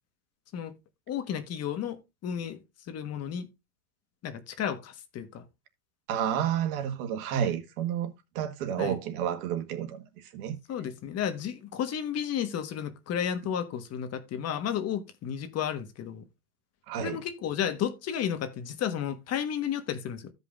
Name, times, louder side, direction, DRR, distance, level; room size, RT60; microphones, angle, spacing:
voice 1, 1.1-3.5 4.2-5.4 8.8-8.9 10.7-16.2 17.0-20.3, left 9 dB, 35° left, 1.3 m, -32 dB
voice 2, 6.1-10.6 16.9-17.2, right 9 dB, 75° right, 1.7 m, -31 dB
15.0 x 5.4 x 2.5 m
supercardioid pair, 130°, 44 cm